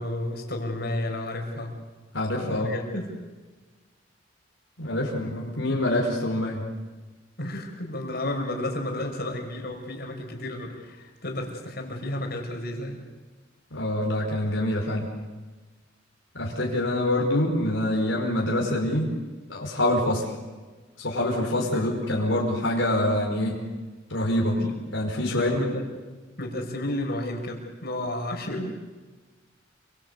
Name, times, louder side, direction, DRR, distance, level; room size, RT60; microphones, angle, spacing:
voice 1, 0.0-1.7 2.4-3.2 7.4-13.0 21.7-21.9 24.6-24.7 25.3-25.9 26.4-28.7, left 1 dB, 55° left, 3 dB, 5.7 m, -32 dB
voice 2, 2.1-2.7 4.8-6.6 13.7-15.1 16.3-19.1 19.5-20.3 21.0-23.6 24.1-24.6 24.9-25.6, left 1 dB, 75° left, -1 dB, 5.2 m, -25 dB
29.0 x 24.0 x 8.3 m, 1.3 s
head